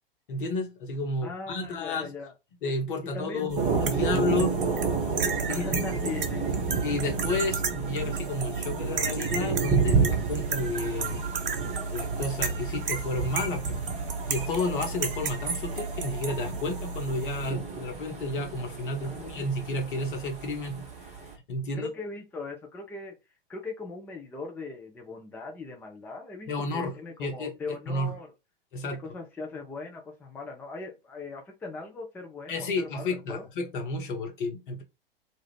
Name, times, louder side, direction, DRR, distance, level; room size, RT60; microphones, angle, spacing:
voice 1, 0.3-2.1 2.6-4.5 5.5-5.8 6.8-11.2 11.9-13.8 14.3-20.8 21.5-21.9 26.5-26.9 27.2-27.5 27.9-28.1 28.7-29.0 32.5-34.8, left 2 dB, 60° left, 1.1 m, -31 dB
voice 2, 1.2-2.3 3.0-3.5 4.3-4.5 5.5-6.9 19.0-19.5 21.7-23.2 23.5-28.3 28.9-33.5, left 3 dB, 5° left, 0.4 m, -40 dB
Thunder, 3.5-21.3, right 5 dB, 25° right, 1.0 m, -31 dB
sound 1, 3.5-17.5, right 4 dB, 65° right, 0.6 m, -33 dB
2.5 x 2.4 x 3.3 m
figure-of-eight pair, 100°, 29 cm